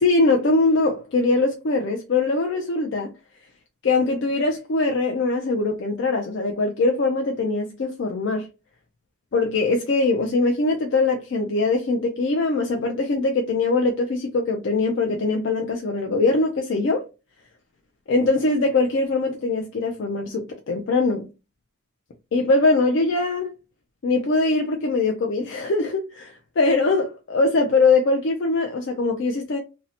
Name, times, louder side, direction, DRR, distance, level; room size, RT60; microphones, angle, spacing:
voice 1, 0.0-3.1 3.8-8.5 9.3-17.0 18.1-21.3 22.3-23.5 24.0-29.6, left 3 dB, 55° left, 0.4 m, -22 dB
2.7 x 2.0 x 2.7 m
head